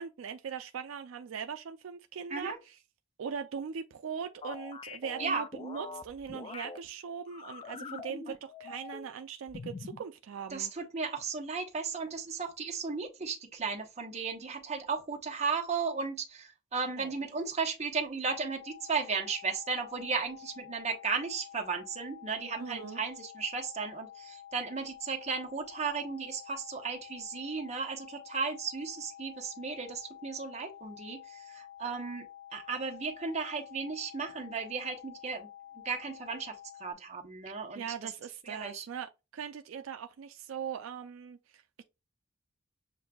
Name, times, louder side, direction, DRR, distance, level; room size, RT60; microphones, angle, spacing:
voice 1, 0.0-2.8 3.2-10.7 17.0-17.1 22.6-23.0 37.5-41.8, right 7 dB, 70° right, 0.4 m, -40 dB
sound 1, 4.4-6.8 7.3-9.1 9.5-10.0, left 4 dB, 25° left, 0.3 m, -44 dB
voice 2, 10.5-32.3 32.5-35.5 35.8-38.1 38.4-38.9, right 5 dB, 35° right, 1.0 m, -35 dB
sound 2, 18.2-36.9, left 10 dB, 90° left, 0.8 m, -50 dB
7.2 x 2.6 x 2.3 m
head